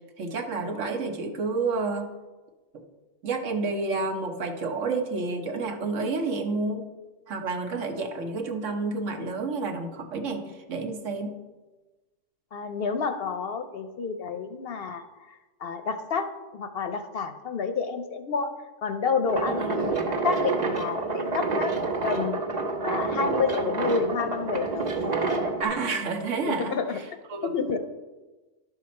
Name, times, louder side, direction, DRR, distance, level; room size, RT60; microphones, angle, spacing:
voice 1, 0.2-2.1 2.7-2.8 3.2-6.9 7.3-11.4 19.5-19.8 25.6-27.5, right 3 dB, 75° right, 5 dB, 1.3 m, -30 dB
voice 2, 12.5-15.0 15.6-16.3 16.5-18.5 18.8-21.7 22.0-22.4 22.8-24.9 26.5-27.0 27.5-27.8, left 5 dB, 60° left, 8 dB, 0.7 m, -29 dB
sound 1, 19.3-25.6, right 3 dB, 35° right, 1.1 m, -28 dB
11.0 x 6.0 x 4.2 m, 1.2 s
omnidirectional pair, 1.3 m